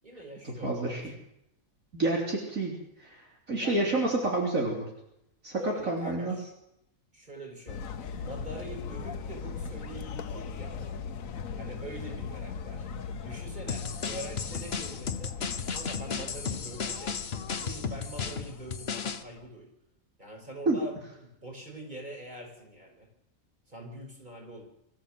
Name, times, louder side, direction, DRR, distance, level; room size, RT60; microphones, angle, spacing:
voice 1, 0.0-1.2 3.6-4.1 5.6-6.5 7.1-7.8 8.2-11.0 11.5-12.9 13.2-15.4 15.7-17.1 17.6-19.7 20.2-23.1 23.7-24.6, right 1 dB, 30° right, 0 dB, 6.4 m, -44 dB
voice 2, 0.6-1.1 1.9-2.7 3.0-4.8 5.4-6.4 20.7-20.8, right 2 dB, 65° right, -1 dB, 3.9 m, -29 dB
sound 1, 7.7-19.5, left 6 dB, 70° left, 1.4 m, -40 dB
sound 2, 13.7-19.2, left 5 dB, 50° left, 1.2 m, -34 dB
24.5 x 14.5 x 7.7 m, 0.80 s
omnidirectional pair, 1.5 m